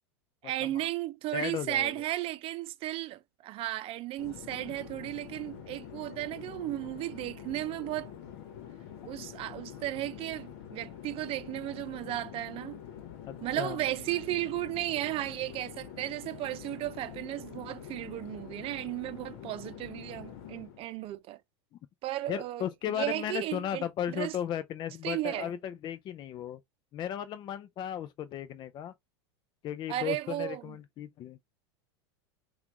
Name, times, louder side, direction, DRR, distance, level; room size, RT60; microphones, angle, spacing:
voice 1, 0.4-8.1 9.0-12.8 13.4-21.4 22.0-22.7 22.9-24.4 25.0-25.5 29.9-30.8, right 15 dB, 40° right, 0.7 m, -35 dB
voice 2, 1.3-1.9 13.3-13.8 22.3-26.6 26.9-28.9 29.6-31.4, left 10 dB, 35° left, 0.5 m, -35 dB
Conversation / Chatter / Fixed-wing aircraft airplane, 4.2-20.9, left 9 dB, 65° left, 1.1 m, -46 dB
5.8 x 2.5 x 2.9 m
hypercardioid pair, 115°, 14 cm